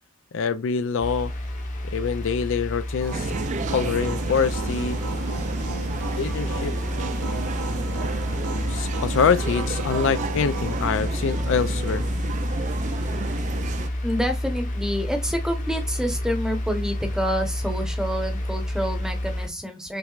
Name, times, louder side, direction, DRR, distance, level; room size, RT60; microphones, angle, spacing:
voice 1, 0.3-1.3 1.9-3.3 3.7-5.0 6.2-6.8 8.7-12.1, left 6 dB, 60° left, 0.4 m, -25 dB
sound 1, 1.0-19.5, left 1 dB, 35° left, 0.9 m, -29 dB
sound 2, 3.0-10.9, right 4 dB, 90° right, 0.6 m, -36 dB
sound 3, 3.1-13.9, right 4 dB, 35° right, 0.3 m, -32 dB
voice 2, 14.0-20.0, equal, 5° right, 0.9 m, -28 dB
5.9 x 3.2 x 2.4 m
head